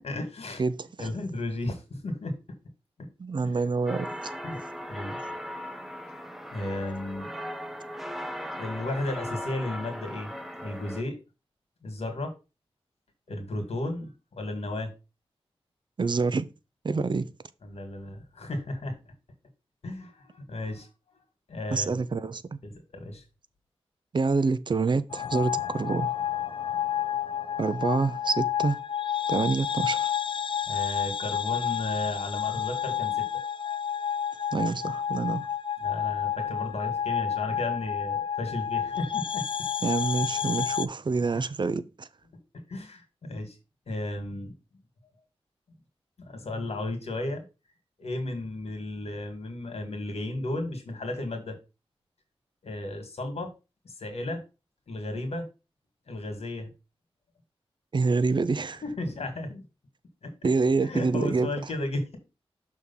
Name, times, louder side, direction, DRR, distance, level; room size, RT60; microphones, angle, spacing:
voice 1, 0.0-0.6 1.0-2.4 3.0-3.1 3.4-3.6 4.4-5.2 5.6-5.7 6.5-7.3 8.6-10.3 10.6-11.2 11.8-12.3 13.3-14.1 14.4-14.9 17.6-19.0 19.8-20.9 21.5-22.0 22.6-23.2 30.6-33.3 35.8-39.7 42.7-43.6 43.9-44.5 46.2-47.4 48.0-51.6 52.6-53.5 53.8-54.4 54.9-55.4 56.1-56.7 58.8-59.6 60.2-60.3 60.8-62.2, left 2 dB, 80° left, 2.0 m, -34 dB
voice 2, 0.6-1.1 3.2-4.1 16.0-16.5 16.8-17.3 21.7-22.6 24.1-26.1 27.6-28.8 29.3-30.1 34.5-35.5 39.8-42.1 57.9-58.8 60.4-61.5, right 4 dB, 50° right, 0.5 m, -27 dB
sound 1, 3.9-11.0, equal, ahead, 0.9 m, -38 dB
sound 2, 25.1-40.9, left 9 dB, 55° left, 0.4 m, -30 dB
6.4 x 3.6 x 5.5 m
wide cardioid pair, 75°, 10 cm